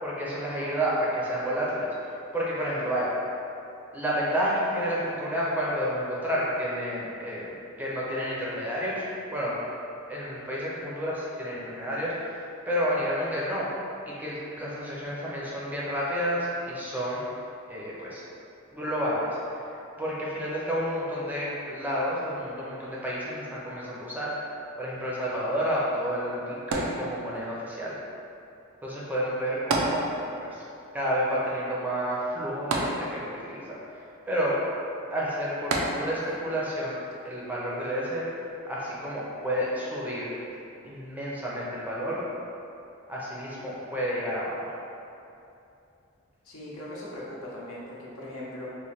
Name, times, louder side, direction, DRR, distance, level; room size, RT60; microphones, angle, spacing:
voice 1, 0.0-3.1 3.9-7.5 7.8-9.0 9.3-9.5 10.1-13.7 14.1-17.2 17.7-18.2 18.7-19.7 20.0-24.3 24.8-27.9 28.8-30.1 30.4-30.6 30.9-33.8 34.3-34.6 35.1-38.3 38.7-40.4 40.8-42.2 43.1-44.7, equal, 10° right, -7 dB, 0.5 m, -30 dB
sound 1, 26.7-27.6 29.7-30.6 30.8-30.9 32.7-33.5 35.7-36.4 37.1-37.2, right 2 dB, 75° right, 0.4 m, -29 dB
voice 2, 46.4-48.7, left 1 dB, 75° left, -6 dB, 0.8 m, -39 dB
3.1 x 2.1 x 4.1 m, 2.7 s
head